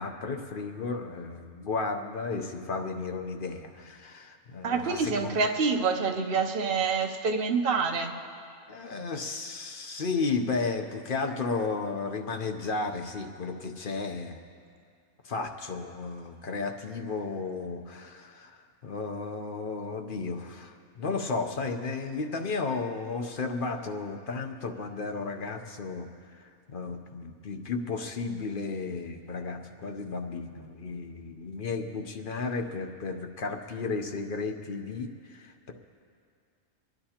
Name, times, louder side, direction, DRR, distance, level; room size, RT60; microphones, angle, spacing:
voice 1, 0.0-5.3 8.7-14.4 15.2-26.1 26.3-35.7, left 4 dB, 45° left, 5 dB, 0.8 m, -34 dB
voice 2, 4.6-8.1, right 4 dB, 50° right, 3 dB, 0.9 m, -27 dB
26.5 x 10.5 x 2.9 m, 2.3 s
omnidirectional pair, 1.4 m